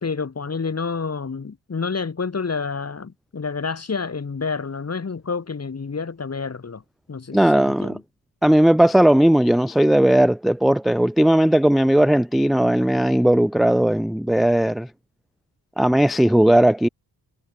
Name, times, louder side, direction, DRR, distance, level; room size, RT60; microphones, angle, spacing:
voice 1, 0.0-6.8 7.1-8.0, left 5 dB, 35° left, 2.3 m, -29 dB
voice 2, 7.3-8.0 8.4-14.9 15.8-16.9, right 1 dB, ahead, 0.4 m, -17 dB
cardioid pair, 90°, 42 cm